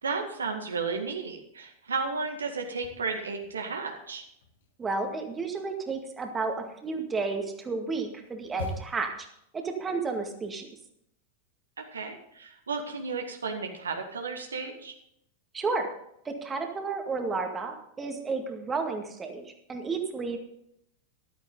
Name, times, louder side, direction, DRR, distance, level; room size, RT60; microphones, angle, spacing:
voice 1, 0.0-4.2 11.8-14.9, right 4 dB, 70° right, 4 dB, 1.8 m, -33 dB
sound 1, 2.6-3.8 4.1-9.2, left 1 dB, 65° left, 2.2 m, -44 dB
voice 2, 4.8-9.1 9.5-10.7 15.5-15.9 16.3-20.4, right 4 dB, 15° right, 4 dB, 2.0 m, -32 dB
14.0 x 12.0 x 3.9 m, 0.75 s
figure-of-eight pair, 90°, 0 cm